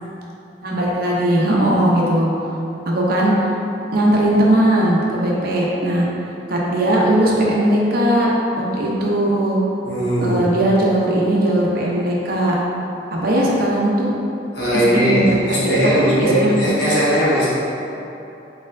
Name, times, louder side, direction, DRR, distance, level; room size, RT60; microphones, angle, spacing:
voice 1, 0.6-2.3 2.9-3.5 3.9-6.1 6.5-8.3 8.7-9.6 10.2-12.6 13.2-14.1 14.7-15.2 15.5-15.6 15.8-16.6, right 1 dB, 55° right, -4 dB, 0.6 m, -18 dB
voice 2, 9.8-10.4 14.5-17.5, equal, 70° left, -8 dB, 1.2 m, -18 dB
4.3 x 4.2 x 2.5 m, 2.9 s
head